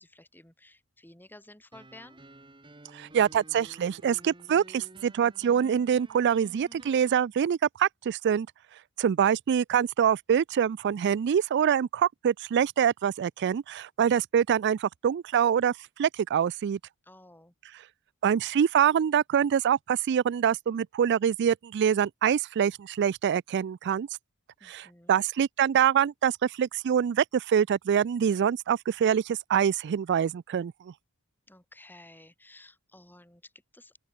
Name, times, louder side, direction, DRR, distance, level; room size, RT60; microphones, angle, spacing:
voice 1, 0.0-2.2 17.0-17.5 24.6-25.2 31.5-34.0, left 1 dB, 10° left, 5.1 m, -53 dB
sound 1, 1.7-7.2, right 1 dB, 20° right, 1.9 m, -52 dB
voice 2, 2.9-8.5 9.0-15.7 16.0-16.8 18.2-24.1 24.6-30.7, right 8 dB, 50° right, 0.3 m, -25 dB
open air
head